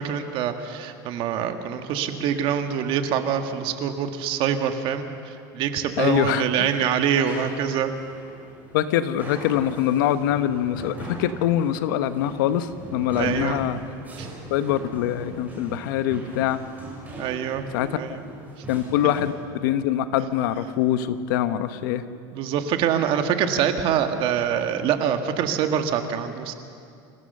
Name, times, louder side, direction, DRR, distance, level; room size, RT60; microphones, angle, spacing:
voice 1, 0.0-7.9 13.2-13.6 14.2-14.3 17.1-17.6 18.0-18.3 22.3-26.5, right 8 dB, 55° right, 7 dB, 1.7 m, -25 dB
voice 2, 6.0-6.7 8.7-13.8 14.5-16.6 17.7-18.0 18.7-19.3 19.6-22.0, left 11 dB, 80° left, 11 dB, 1.1 m, -24 dB
sound 1, 6.6-19.4, right 2 dB, 15° right, 7.2 m, -40 dB
27.5 x 16.0 x 6.7 m, 2.5 s
supercardioid pair, 130°, 11 cm